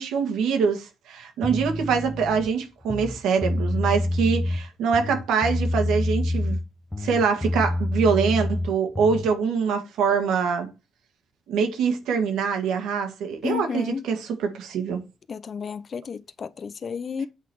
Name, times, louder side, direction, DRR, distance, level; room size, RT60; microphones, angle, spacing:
voice 1, 0.0-6.6 7.0-10.7 11.5-15.0, right 6 dB, 85° right, 1.6 m, -24 dB
sound 1, 1.4-2.5 2.8-4.6 4.9-6.7 6.9-9.3, left 1 dB, 10° left, 0.8 m, -27 dB
voice 2, 13.4-14.0 15.3-17.3, left 6 dB, 45° left, 0.5 m, -32 dB
8.1 x 3.9 x 4.6 m
cardioid pair, 90°, 0 cm